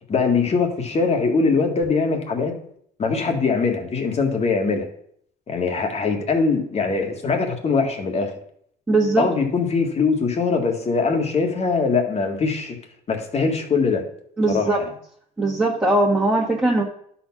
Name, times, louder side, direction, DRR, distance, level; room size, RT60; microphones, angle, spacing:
voice 1, 0.1-2.5 3.0-4.9 5.5-8.3 9.2-12.8 13.1-14.0 14.5-14.9, left 4 dB, 40° left, 3 dB, 1.9 m, -22 dB
voice 2, 8.9-9.3 14.4-14.8 15.4-16.8, right 2 dB, 15° right, -5 dB, 1.7 m, -19 dB
11.5 x 4.4 x 6.0 m, 0.67 s
cardioid pair, 110°, 17 cm